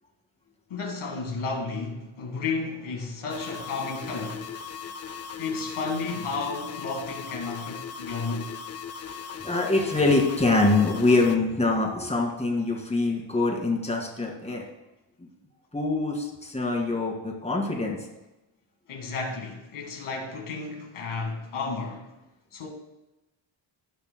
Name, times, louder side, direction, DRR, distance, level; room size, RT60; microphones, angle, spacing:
voice 1, 0.7-4.5 5.4-8.5 14.5-14.6 18.9-22.1 22.5-22.7, left 4 dB, 85° left, 2 dB, 1.8 m, -32 dB
sound 1, 3.3-11.4, left 7 dB, 35° left, 0.5 m, -38 dB
voice 2, 9.4-14.7 15.2-15.3 15.7-18.0, left 2 dB, 15° left, -1 dB, 2.1 m, -24 dB
16.5 x 5.8 x 2.2 m, 0.98 s
cardioid pair, 95°, 48 cm